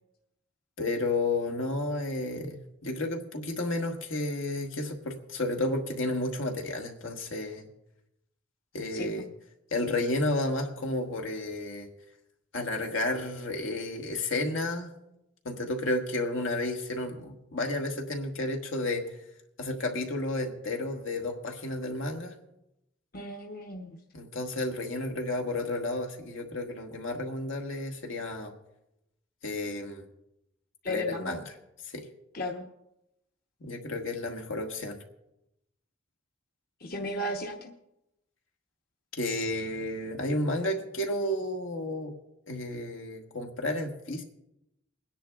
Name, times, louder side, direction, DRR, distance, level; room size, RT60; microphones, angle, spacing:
voice 1, 0.8-7.7 8.7-9.3 9.7-11.9 12.5-14.9 15.4-19.1 19.6-22.3 24.1-28.5 29.4-30.1 30.9-31.4 31.9-32.1 33.6-35.0 39.1-42.1 42.5-44.2, left 2 dB, 80° left, 3 dB, 1.4 m, -32 dB
voice 2, 23.1-24.0 30.8-31.4 32.3-32.6 36.8-37.7, left 1 dB, 50° left, 1 dB, 0.8 m, -34 dB
29.0 x 10.0 x 2.3 m, 0.87 s
head